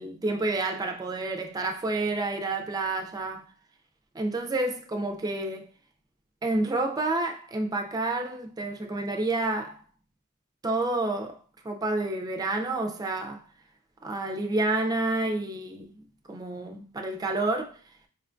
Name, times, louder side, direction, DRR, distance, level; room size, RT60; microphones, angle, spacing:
voice 1, 0.0-3.5 4.1-5.7 6.4-9.8 10.6-11.4 11.6-13.4 14.0-16.0 16.3-17.8, right 2 dB, 20° right, 0.4 m, -29 dB
4.9 x 2.2 x 2.5 m
head